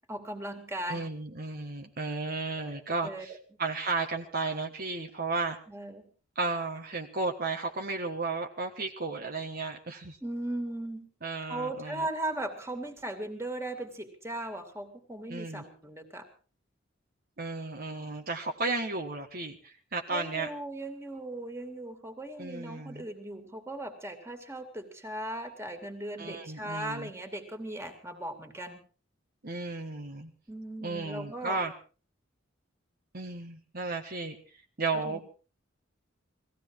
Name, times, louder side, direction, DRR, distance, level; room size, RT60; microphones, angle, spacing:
voice 1, 0.1-1.1 2.6-2.7 3.0-3.3 5.7-6.1 10.2-11.1 11.5-16.3 20.1-28.8 30.5-31.6 35.0-35.2, right 1 dB, 15° right, 6 dB, 2.7 m, -38 dB
voice 2, 0.9-5.6 6.3-10.2 11.2-12.0 15.3-15.6 17.4-20.5 22.4-23.0 26.2-27.1 29.4-30.3 30.8-31.7 33.1-35.2, right 3 dB, 50° right, 3 dB, 1.5 m, -34 dB
19.5 x 15.5 x 4.7 m, 0.38 s
head